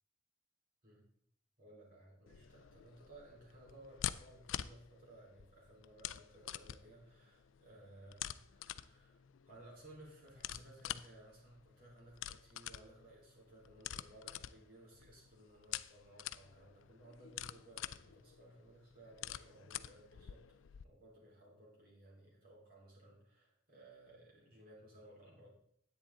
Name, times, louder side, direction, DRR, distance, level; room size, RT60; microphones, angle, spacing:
voice 1, 1.6-25.5, right 1 dB, 50° right, -3 dB, 4.3 m, -59 dB
sound 1, 2.3-20.8, left 11 dB, 80° left, 0.4 m, -47 dB
10.5 x 8.6 x 3.8 m, 0.67 s
head